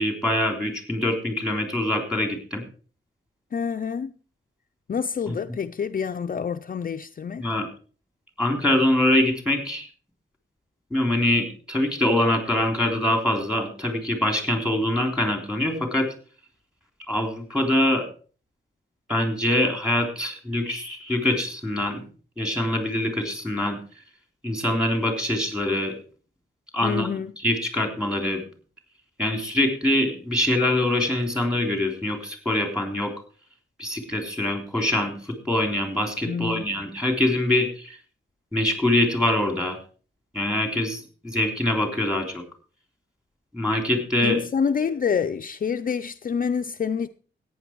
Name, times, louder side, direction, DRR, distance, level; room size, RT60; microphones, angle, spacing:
voice 1, 0.0-2.6 5.3-5.4 7.4-7.7 8.4-9.9 10.9-16.1 17.1-18.1 19.1-22.0 22.4-23.8 24.4-26.0 26.7-27.1 27.4-28.4 29.2-33.1 33.8-38.0 38.5-39.8 40.3-42.4 43.5-44.4, left 1 dB, 5° right, 3.5 m, -24 dB
voice 2, 3.5-4.1 4.9-7.5 26.8-27.3 36.2-36.6 44.2-47.1, left 6 dB, 45° left, 0.5 m, -27 dB
14.5 x 9.5 x 4.6 m
wide cardioid pair, 125°, 20 cm